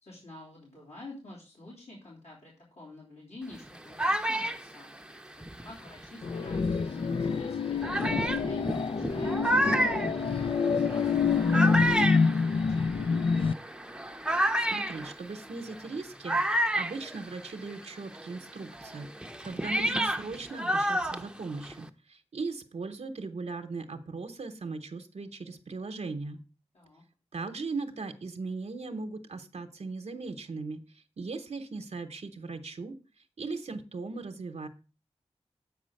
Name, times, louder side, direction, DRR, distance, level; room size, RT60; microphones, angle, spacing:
voice 1, 0.0-4.9 5.4-13.1 26.7-27.0, left 2 dB, 75° left, -5 dB, 3.3 m, -49 dB
sound 1, 3.5-6.5 7.2-7.3 7.8-17.8 18.1-21.9, right 1 dB, 5° right, 0.7 m, -31 dB
sound 2, 6.2-13.5, left 5 dB, 55° left, 0.4 m, -27 dB
voice 2, 14.6-19.1 19.4-26.4 27.3-32.9 33.4-34.7, right 3 dB, 75° right, 5 dB, 0.9 m, -38 dB
8.4 x 5.1 x 6.4 m, 0.35 s
wide cardioid pair, 95°, 11 cm